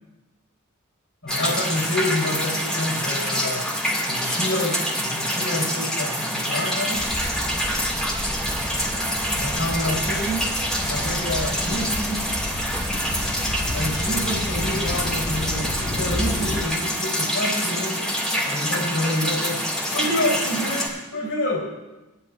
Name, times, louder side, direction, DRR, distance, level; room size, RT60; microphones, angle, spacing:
voice 1, 1.2-3.7 4.1-7.1 9.3-10.5 10.8-12.3 13.6-18.0 18.4-19.6 19.9-21.7, left 1 dB, 65° left, -2 dB, 3.3 m, -28 dB
sound 1, 1.3-20.9, equal, 5° left, 2.1 m, -26 dB
sound 2, 6.9-16.6, left 1 dB, 50° left, 1.3 m, -32 dB
18.5 x 11.0 x 2.5 m, 1.1 s
head